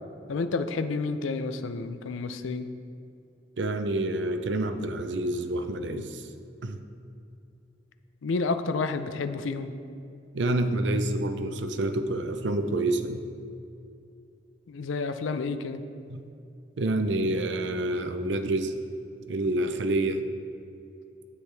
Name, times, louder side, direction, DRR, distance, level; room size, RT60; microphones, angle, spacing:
voice 1, 0.3-2.7 8.2-9.7 14.7-15.8, left 4 dB, 90° left, 9 dB, 0.5 m, -30 dB
voice 2, 3.6-6.3 6.6-6.8 10.3-13.5 16.1-16.3 16.8-18.7 19.3-20.3, right 1 dB, 65° right, 9 dB, 0.6 m, -28 dB
9.5 x 8.2 x 3.3 m, 2.6 s
head